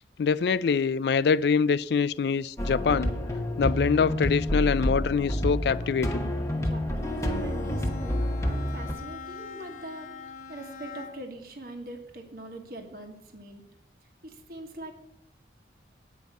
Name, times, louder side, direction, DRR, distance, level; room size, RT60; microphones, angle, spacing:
voice 1, 0.2-3.2 3.6-6.3, left 5 dB, 65° left, 0.3 m, -24 dB
sound 1, 2.6-8.9, equal, 15° left, 1.1 m, -29 dB
voice 2, 6.5-13.6 14.2-14.9, right 1 dB, 55° right, 1.4 m, -42 dB
Bowed string instrument, 6.9-11.4, left 4 dB, 45° left, 0.8 m, -43 dB
9.3 x 5.3 x 7.4 m
head